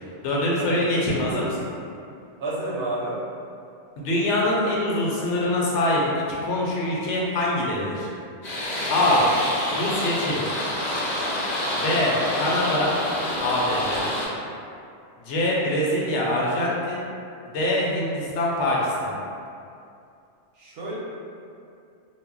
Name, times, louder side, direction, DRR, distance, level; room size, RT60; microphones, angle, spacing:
voice 1, 0.2-1.6 4.0-6.0 6.3-8.1 8.9-9.2 9.7-10.4 11.8-12.9 13.4-14.1 15.2-17.1 17.5-19.1, left 1 dB, 80° left, -4 dB, 0.9 m, -24 dB
voice 2, 2.4-3.2 9.0-9.3 20.5-21.0, right 2 dB, 65° right, -6 dB, 0.8 m, -30 dB
sound 1, 8.4-14.3, left 1 dB, 45° left, 0.6 m, -27 dB
2.1 x 2.0 x 3.6 m, 2.5 s
omnidirectional pair, 1.2 m